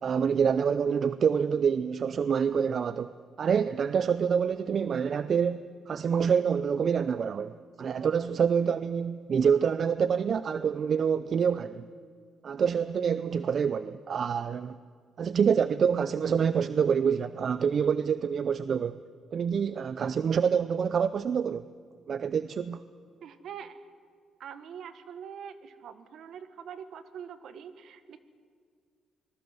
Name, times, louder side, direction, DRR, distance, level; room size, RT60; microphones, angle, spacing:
voice 1, 0.0-11.9 12.4-14.8 15.2-19.0 19.3-21.7 22.1-22.8, right 7 dB, 55° right, 0.6 m, -27 dB
voice 2, 23.2-23.9 24.4-28.2, right 8 dB, 70° right, 1.6 m, -44 dB
25.5 x 20.0 x 7.9 m
cardioid pair, 90°, 0 cm